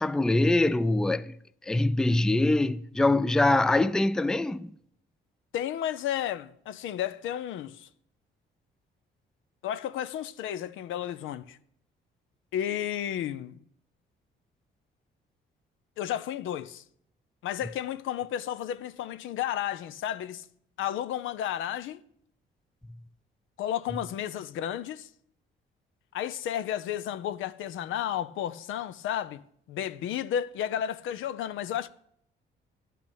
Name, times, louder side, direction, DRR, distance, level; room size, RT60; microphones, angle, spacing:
voice 1, 0.0-1.3 1.6-4.7, left 2 dB, 5° left, 0.4 m, -24 dB
voice 2, 5.5-7.9 9.6-11.6 12.5-13.6 16.0-16.8 17.4-20.4 20.8-22.0 23.6-25.1 26.1-29.4 29.7-31.9, left 10 dB, 80° left, 0.6 m, -32 dB
10.5 x 5.9 x 8.5 m
cardioid pair, 90°, 20 cm